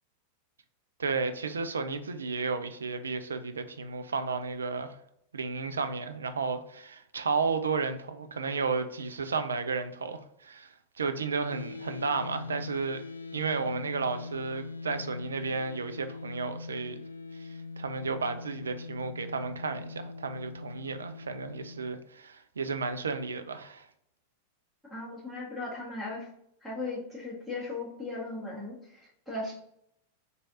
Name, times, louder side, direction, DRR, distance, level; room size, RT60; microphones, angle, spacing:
voice 1, 1.0-5.0 5.3-13.0 13.3-17.0 17.3-23.9, right 4 dB, 70° right, 0.3 m, -33 dB
sound 1, 11.5-21.8, left 3 dB, 80° left, 0.3 m, -42 dB
voice 2, 24.9-26.3 26.6-29.0 29.3-29.5, left 2 dB, 5° right, 1.5 m, -37 dB
3.1 x 2.7 x 3.8 m
figure-of-eight pair, 90°, 0 cm